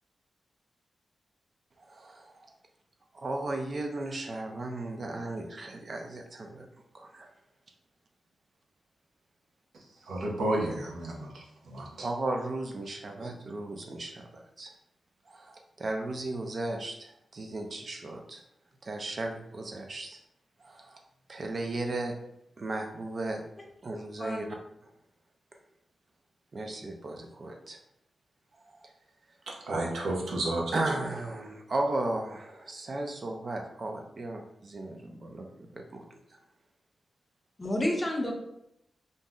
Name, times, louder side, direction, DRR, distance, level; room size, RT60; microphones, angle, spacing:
voice 1, 1.8-2.3 3.1-6.7 6.9-7.3 12.0-14.7 15.3-18.4 18.8-20.2 20.6-21.0 21.3-22.1 22.6-23.4 23.8-24.5 26.5-27.8 28.6-28.9 30.7-36.0, right 2 dB, 50° right, 3 dB, 0.4 m, -35 dB
voice 2, 10.1-11.3 11.7-11.8 29.7-30.6, right 1 dB, 85° right, -2 dB, 0.7 m, -30 dB
voice 3, 37.6-38.3, left 1 dB, 20° left, 1 dB, 0.6 m, -29 dB
2.6 x 2.1 x 3.5 m, 0.79 s
cardioid pair, 85°, 0 cm